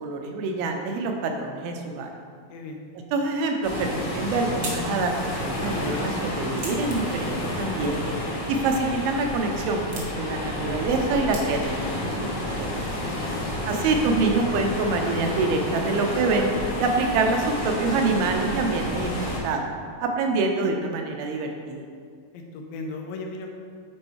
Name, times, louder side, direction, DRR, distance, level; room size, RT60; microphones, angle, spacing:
voice 1, 0.0-2.1 3.1-8.1 8.5-12.3 12.6-12.7 13.7-16.5 16.8-19.7 20.0-21.8, right 3 dB, 85° right, 3 dB, 2.7 m, -26 dB
voice 2, 2.5-2.9 13.0-13.5 22.3-23.5, left 2 dB, 75° left, 3 dB, 2.3 m, -37 dB
sound 1, 3.6-19.4, left 1 dB, 55° left, 1.2 m, -30 dB
sound 2, 3.9-11.9, right 2 dB, 60° right, 1.2 m, -43 dB
9.3 x 4.4 x 4.7 m, 2.1 s
omnidirectional pair, 4.2 m